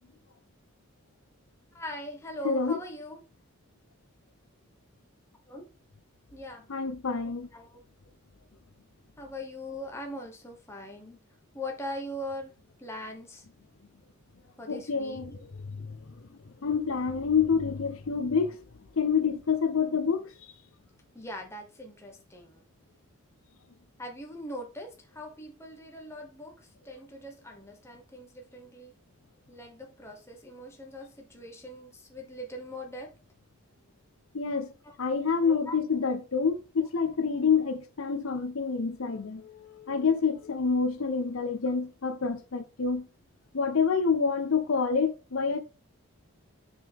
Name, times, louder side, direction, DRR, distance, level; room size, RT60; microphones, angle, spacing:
voice 1, 1.7-3.2 5.5-5.7 6.3-6.7 7.5-7.9 9.2-11.2 11.5-12.5 12.8-13.4 14.6-15.2 21.1-22.6 24.0-29.0 29.5-33.1 34.8-35.0 35.4-35.7 36.8-36.9, left 1 dB, 10° left, 1.2 m, -41 dB
voice 2, 2.4-2.8 6.7-7.5 14.7-15.4 15.7-16.0 16.6-18.6 19.0-20.3 34.3-34.7 35.0-43.1 43.5-45.6, left 5 dB, 70° left, 0.6 m, -27 dB
5.9 x 4.8 x 3.5 m
head